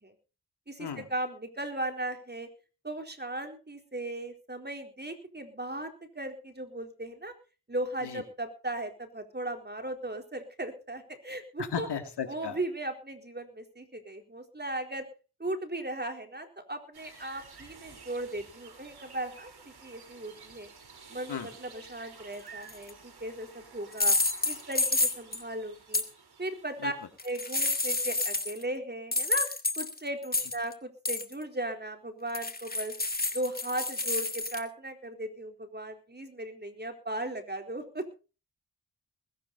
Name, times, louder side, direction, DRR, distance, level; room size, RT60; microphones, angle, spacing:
voice 1, 0.7-2.5 2.8-5.9 6.2-7.3 7.7-11.9 12.3-15.1 15.4-19.5 19.8-20.7 21.1-24.2 24.5-26.0 26.4-26.9 27.2-29.5 29.8-32.9 33.3-38.1, right 1 dB, 25° right, 5 dB, 4.2 m, -37 dB
voice 2, 11.6-12.6 21.3-21.5 26.8-26.9, left 7 dB, 80° left, 6 dB, 2.8 m, -35 dB
sound 1, 16.9-27.6, right 5 dB, 70° right, 4.5 m, -52 dB
sound 2, 22.7-22.9 23.9-25.4 25.9-26.0 27.2-28.6 29.1-30.7 31.1-31.3 32.3-34.6, left 2 dB, 20° left, 2.4 m, -29 dB
20.5 x 11.5 x 4.2 m, 0.35 s
cardioid pair, 45°, 40 cm